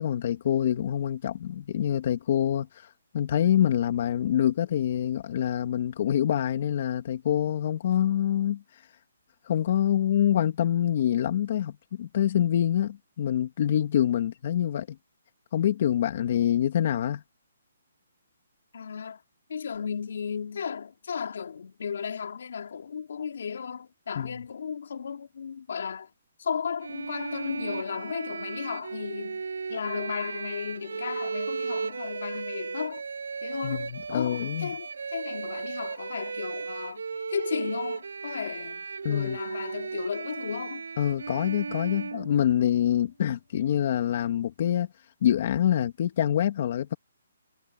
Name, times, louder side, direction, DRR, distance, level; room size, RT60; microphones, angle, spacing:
voice 1, 0.0-2.7 3.1-8.6 9.5-15.0 15.5-17.2 24.1-24.4 33.6-34.7 39.0-39.4 41.0-44.9 45.2-46.9, left 10 dB, 35° left, 2.7 m, -26 dB
voice 2, 18.7-19.2 19.5-26.1 26.4-29.4 29.7-33.0 33.4-37.0 37.3-40.8, left 6 dB, 55° left, 3.8 m, -35 dB
Bowed string instrument, 26.8-42.9, right 5 dB, 85° right, 6.8 m, -36 dB
hypercardioid pair, 175°, 0 cm